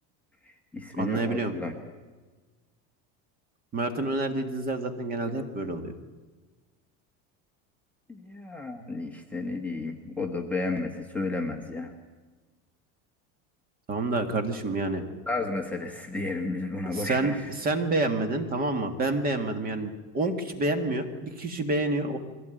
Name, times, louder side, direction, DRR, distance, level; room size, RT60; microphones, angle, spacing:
voice 1, 0.5-1.7 8.1-11.9 15.3-17.5, left 3 dB, 5° left, 0 dB, 1.3 m, -32 dB
voice 2, 1.0-1.5 3.7-5.9 13.9-15.0 16.9-17.3 17.6-22.2, right 2 dB, 25° right, 7 dB, 1.8 m, -28 dB
22.5 x 16.5 x 9.2 m, 1.3 s
cardioid pair, 175°, 35 cm